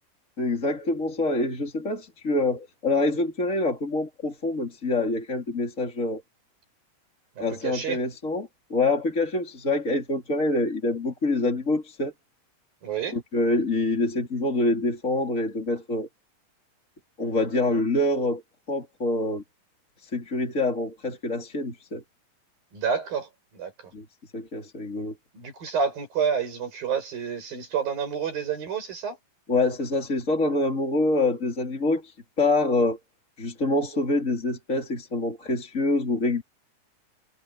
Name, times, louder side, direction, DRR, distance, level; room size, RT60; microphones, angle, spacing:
voice 1, 0.4-6.2 7.4-12.1 13.1-16.1 17.2-18.4 18.7-19.4 20.0-22.0 23.9-24.0 24.3-25.1 29.5-33.0 33.4-36.4, left 2 dB, 20° left, 3.6 m, -26 dB
voice 2, 7.4-8.0 12.8-13.2 22.7-23.7 25.3-29.2, right 6 dB, 85° right, 8.3 m, -29 dB
omnidirectional pair, 4.0 m